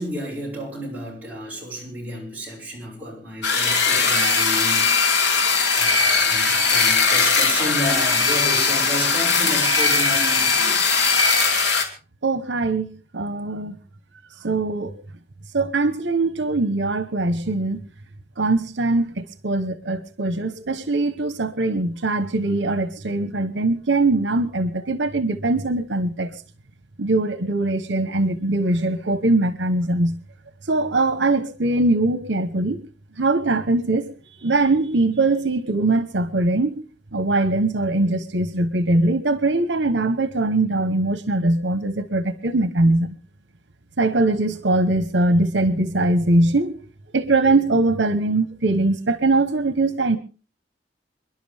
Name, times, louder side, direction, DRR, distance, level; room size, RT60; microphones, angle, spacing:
voice 1, 0.0-5.4 5.7-10.8, equal, 10° right, 6.7 m, -31 dB
sound 1, 3.4-11.8, left 4 dB, 70° left, 2.9 m, -19 dB
voice 2, 12.2-12.9 13.1-13.8 14.4-14.9 15.5-17.8 18.4-26.3 27.0-30.1 30.7-32.8 33.2-34.1 34.4-36.8 37.1-43.1 44.0-46.8 47.1-50.2, right 2 dB, 85° right, 1.1 m, -21 dB
27.5 x 11.5 x 3.5 m
head